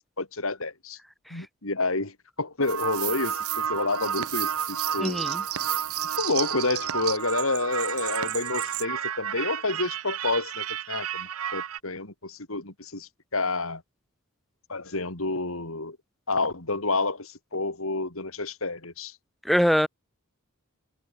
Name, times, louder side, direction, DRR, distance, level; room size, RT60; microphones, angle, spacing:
voice 1, 0.2-1.0 1.3-5.3 6.2-13.8 14.7-16.0 16.3-19.1, left 3 dB, 70° left, 3.6 m, -29 dB
sound 1, 2.6-11.8, right 9 dB, 85° right, 0.8 m, -31 dB
voice 2, 5.0-5.4 19.5-19.9, equal, ahead, 0.4 m, -22 dB
head